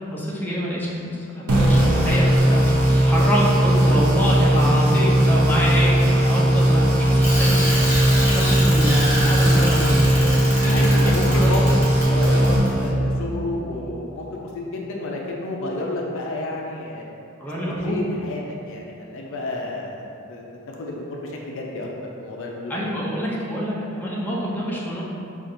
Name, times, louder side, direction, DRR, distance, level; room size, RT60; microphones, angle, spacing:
voice 1, 0.1-7.9 8.3-10.0 10.6-11.8 17.4-18.0 22.7-25.0, equal, 10° left, -6 dB, 0.5 m, -26 dB
sound 1, 1.5-13.2, right 1 dB, 70° right, 0.6 m, -18 dB
Bicycle, 7.2-12.7, equal, 10° right, 0.9 m, -27 dB
voice 2, 10.1-10.4 10.7-17.1 17.6-20.0 20.3-22.8, left 2 dB, 60° left, -1 dB, 0.5 m, -30 dB
5.7 x 2.4 x 2.6 m, 2.7 s
head